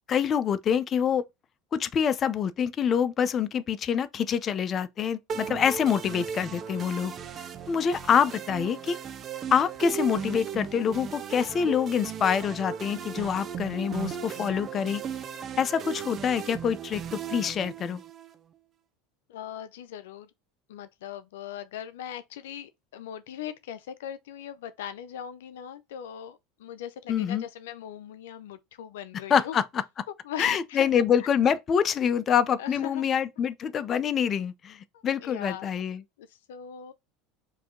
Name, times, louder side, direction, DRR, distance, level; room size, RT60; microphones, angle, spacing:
voice 1, 0.1-1.2 1.7-7.1 7.7-9.0 9.5-15.0 15.6-18.0 27.1-27.4 29.3-29.8 30.4-34.8 35.0-36.0, left 7 dB, 35° left, 0.6 m, -26 dB
sound 1, 5.3-18.3, right 8 dB, 40° right, 0.7 m, -37 dB
voice 2, 19.3-20.3 20.7-29.6 30.2-30.9 31.2-31.3 32.6-33.0 34.9-35.7 36.2-36.9, left 10 dB, 85° left, 0.5 m, -40 dB
4.8 x 2.8 x 3.7 m
supercardioid pair, 100°, 0 cm